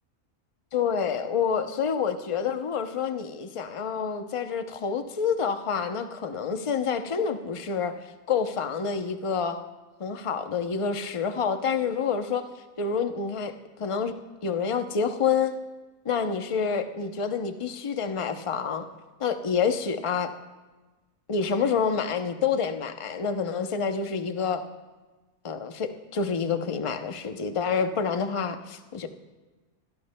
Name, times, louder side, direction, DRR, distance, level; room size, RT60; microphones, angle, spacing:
voice 1, 0.7-8.0 8.3-9.6 10.0-12.5 12.8-14.1 14.4-15.5 16.0-18.9 19.2-20.3 21.3-24.6 25.4-29.1, left 6 dB, 45° left, 7 dB, 0.4 m, -28 dB
24.5 x 16.5 x 2.2 m, 1.2 s
omnidirectional pair, 1.6 m